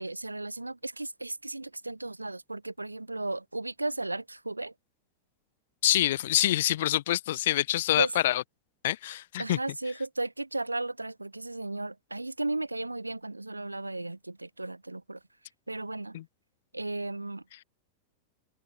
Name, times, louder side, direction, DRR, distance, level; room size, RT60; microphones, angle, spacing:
voice 1, 0.0-4.7 8.0-8.1 9.4-15.2 15.7-16.2 16.7-17.4, right 2 dB, 85° right, 0.8 m, -35 dB
voice 2, 5.8-8.4 8.8-9.6 16.1-16.2, left 14 dB, 55° left, 0.9 m, -26 dB
figure-of-eight pair, 90°, 0 cm